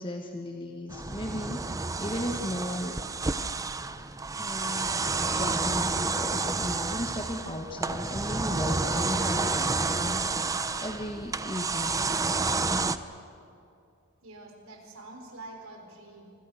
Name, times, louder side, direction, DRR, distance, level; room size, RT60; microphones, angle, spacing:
voice 1, 0.0-3.0 4.4-5.0 5.3-11.9, left 1 dB, 25° left, 2 dB, 1.4 m, -36 dB
sound 1, 0.9-13.0, right 3 dB, 15° right, 0.7 m, -30 dB
voice 2, 14.2-16.3, right 2 dB, 80° right, 2 dB, 5.1 m, -46 dB
27.0 x 25.5 x 6.6 m, 2.5 s
head